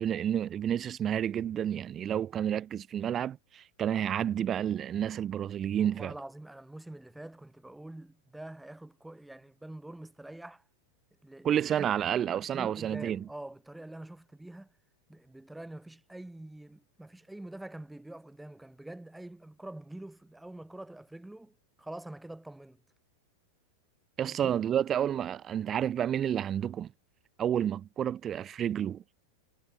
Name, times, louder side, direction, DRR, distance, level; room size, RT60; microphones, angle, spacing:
voice 1, 0.0-6.1 11.4-13.2 24.2-26.9 27.4-29.1, right 9 dB, 25° right, 0.6 m, -30 dB
voice 2, 5.8-10.6 11.2-11.9 12.4-14.7 15.1-22.8 24.2-24.6, right 1 dB, 5° right, 3.8 m, -46 dB
figure-of-eight pair, 90°, 0 cm